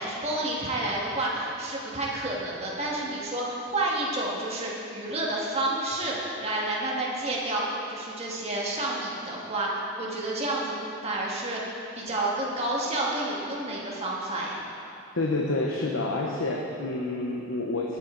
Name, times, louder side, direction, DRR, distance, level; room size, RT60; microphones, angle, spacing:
voice 1, 0.0-10.8 11.0-14.6, right 1 dB, 30° right, -4 dB, 2.1 m, -30 dB
voice 2, 15.1-18.0, left 2 dB, 75° left, -1 dB, 1.0 m, -28 dB
18.0 x 9.2 x 4.0 m, 2.7 s
head